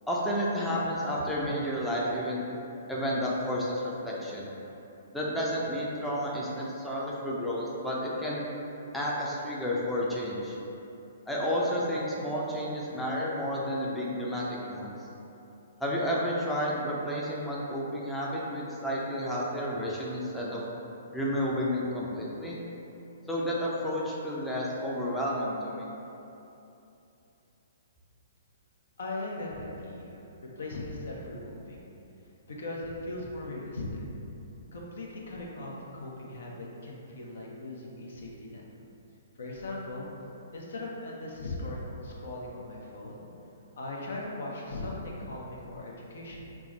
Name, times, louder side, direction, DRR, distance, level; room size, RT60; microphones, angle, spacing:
voice 1, 0.1-2.4 2.9-4.5 5.1-8.5 8.9-10.6 11.3-14.9 15.8-20.6 21.1-22.6 23.3-25.9, equal, 5° left, -6 dB, 0.5 m, -31 dB
voice 2, 29.0-30.2 30.6-31.8 32.5-34.0 34.7-38.6 39.4-40.1 40.5-43.3 43.8-46.4, left 2 dB, 65° left, -3 dB, 0.6 m, -39 dB
3.4 x 2.1 x 3.9 m, 2.9 s
hypercardioid pair, 125°, 0 cm